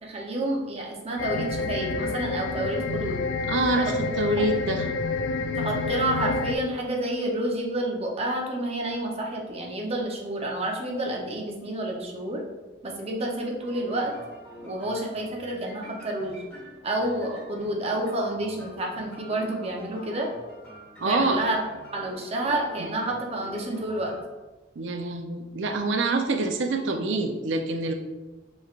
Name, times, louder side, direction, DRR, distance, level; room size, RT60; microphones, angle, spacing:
voice 1, 0.0-3.2 3.7-3.9 5.5-12.4 12.8-14.1 14.6-16.4 16.8-20.3 21.1-21.6 21.9-24.1, right 1 dB, 35° right, -1 dB, 0.7 m, -29 dB
sound 1, 1.2-6.6, left 3 dB, 85° left, 0.4 m, -28 dB
voice 2, 3.5-4.8 21.0-21.5 24.8-27.9, right 2 dB, 70° right, 5 dB, 0.5 m, -26 dB
sound 2, 13.6-24.2, equal, 5° left, 1.3 m, -46 dB
5.7 x 3.1 x 2.4 m, 1.2 s
head